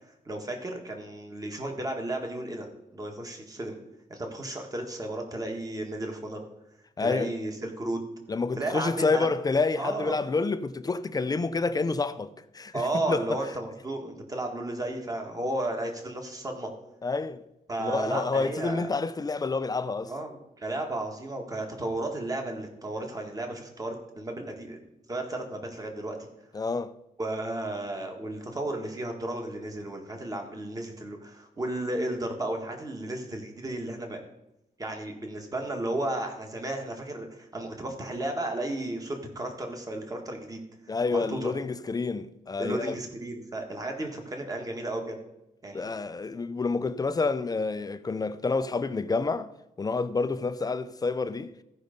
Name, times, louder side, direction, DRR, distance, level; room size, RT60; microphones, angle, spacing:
voice 1, 0.3-3.8 4.1-6.4 7.0-8.0 8.6-9.3 9.8-10.2 12.7-16.7 17.7-18.9 20.1-24.8 25.1-26.3 27.2-34.2 34.8-41.5 42.6-45.2 45.6-45.9, right 1 dB, 25° right, 1.7 m, -33 dB
voice 2, 7.0-7.3 8.3-13.3 17.0-17.4 17.8-20.1 26.5-26.9 40.9-43.0 45.7-49.5 49.8-51.5, left 4 dB, 25° left, 0.5 m, -28 dB
15.0 x 5.4 x 5.2 m
wide cardioid pair, 125°, 15 cm